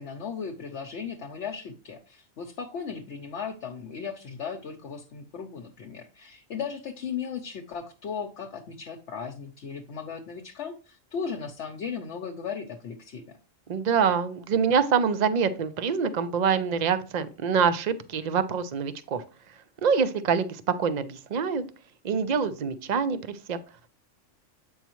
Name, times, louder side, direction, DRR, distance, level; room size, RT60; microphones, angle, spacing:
voice 1, 0.0-13.4, left 6 dB, 65° left, 3 dB, 1.0 m, -36 dB
voice 2, 13.7-19.2 19.8-21.6 22.0-23.6, right 6 dB, 50° right, 13 dB, 0.5 m, -25 dB
8.1 x 5.5 x 3.0 m, 0.35 s
omnidirectional pair, 1.3 m